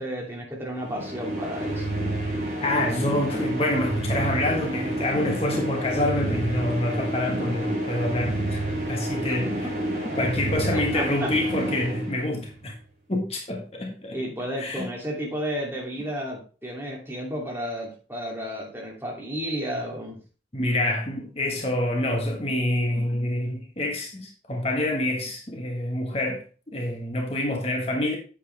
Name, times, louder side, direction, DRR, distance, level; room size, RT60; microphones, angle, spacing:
voice 1, 0.0-1.9 9.1-10.0 10.7-11.3 14.1-20.2, equal, 15° right, 2.7 m, -33 dB
sound 1, 0.8-12.6, right 1 dB, 40° right, 4.3 m, -29 dB
voice 2, 2.6-9.7 10.1-12.7 13.1-14.2 14.6-14.9 20.5-26.4 26.7-28.2, left 1 dB, 35° left, 1.3 m, -27 dB
8.7 x 7.4 x 3.4 m
head